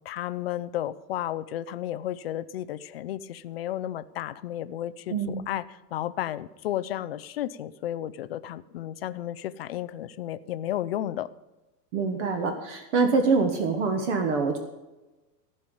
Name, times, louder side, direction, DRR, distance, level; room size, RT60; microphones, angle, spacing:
voice 1, 0.1-11.3, left 12 dB, 40° left, 15 dB, 0.4 m, -33 dB
voice 2, 5.1-5.4 11.9-14.6, right 4 dB, 45° right, 6 dB, 1.4 m, -25 dB
15.0 x 5.5 x 8.7 m, 1.1 s
hypercardioid pair, 150°, 50 cm